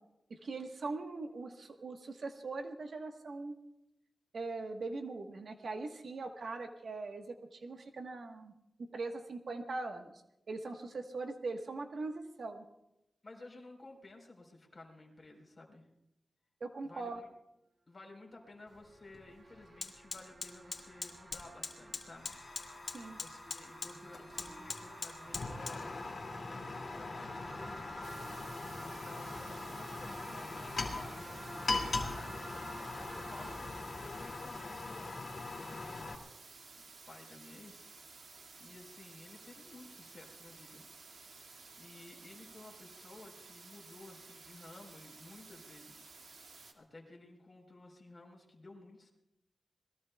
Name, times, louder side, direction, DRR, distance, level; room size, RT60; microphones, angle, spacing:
voice 1, 0.3-3.5 4.3-8.5 8.9-10.1 10.5-12.6 16.6-17.2 22.9-23.2, right 3 dB, 60° right, 4 dB, 1.2 m, -41 dB
voice 2, 13.2-15.9 16.8-17.3 17.9-22.3 23.2-31.4 31.7-33.6 34.0-36.2 37.1-40.8 41.8-46.3 46.7-49.1, left 2 dB, 30° left, 1 dB, 4.1 m, -54 dB
sound 1, 18.4-35.3, right 2 dB, 35° right, 1.9 m, -52 dB
Fire, 18.7-18.8 19.1-36.2, left 3 dB, 50° left, 2.4 m, -41 dB
sound 2, 28.0-46.7, right 4 dB, 75° right, 2.0 m, -54 dB
27.0 x 20.5 x 2.3 m, 0.88 s
wide cardioid pair, 125°, 0 cm